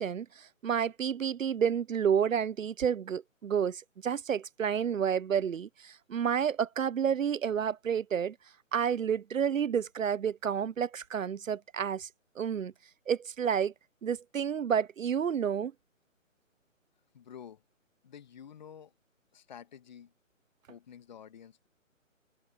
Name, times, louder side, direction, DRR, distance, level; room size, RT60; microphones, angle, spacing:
voice 1, 0.0-8.4 8.7-12.1 12.4-12.7 13.1-13.7 14.0-15.7, right 8 dB, 75° right, 0.6 m, -30 dB
voice 2, 17.1-17.6 18.0-18.9 19.3-20.1 20.7-21.7, left 8 dB, 35° left, 2.0 m, -50 dB
figure-of-eight pair, 145°, 40 cm